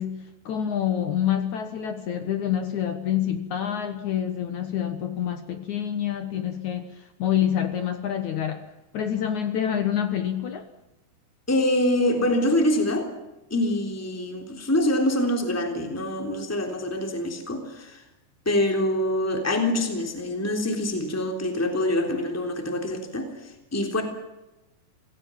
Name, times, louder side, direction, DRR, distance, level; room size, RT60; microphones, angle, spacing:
voice 1, 0.0-8.7 8.9-10.6, left 10 dB, 75° left, 9 dB, 1.7 m, -27 dB
voice 2, 11.5-13.1 13.5-18.0 18.4-24.0, left 1 dB, 5° left, 5 dB, 2.7 m, -25 dB
28.0 x 18.0 x 7.4 m, 1.0 s
omnidirectional pair, 5.3 m